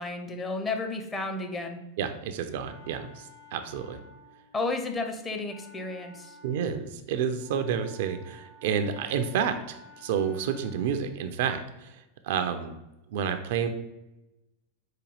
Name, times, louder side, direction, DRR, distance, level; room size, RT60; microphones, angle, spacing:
voice 1, 0.0-1.8 4.5-6.4, left 3 dB, 15° left, 4 dB, 0.5 m, -32 dB
voice 2, 2.0-3.1 3.5-4.0 6.4-11.6 12.2-12.7 13.1-13.7, right 7 dB, 55° right, 8 dB, 0.3 m, -29 dB
Wind instrument woodwind instrument, 2.1-11.2, left 1 dB, 70° left, 1.5 m, -54 dB
4.9 x 2.3 x 3.1 m, 0.97 s
figure-of-eight pair, 90°, 0 cm